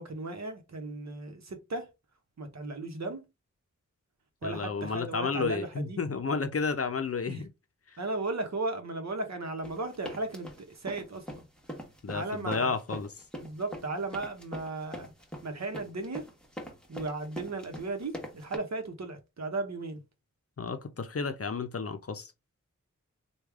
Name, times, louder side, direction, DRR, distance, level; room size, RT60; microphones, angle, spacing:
voice 1, 0.0-1.9 2.4-3.3 4.4-6.0 7.3-7.4 8.0-11.4 12.1-12.7 13.4-15.1 15.4-16.3 16.9-20.0, right 2 dB, 60° right, 0.9 m, -36 dB
voice 2, 4.4-7.5 7.9-8.0 12.0-13.1 20.6-22.3, left 4 dB, 50° left, 0.6 m, -32 dB
sound 1, 9.6-18.6, equal, 5° left, 1.1 m, -42 dB
3.2 x 2.3 x 3.5 m
cardioid pair, 45°, 31 cm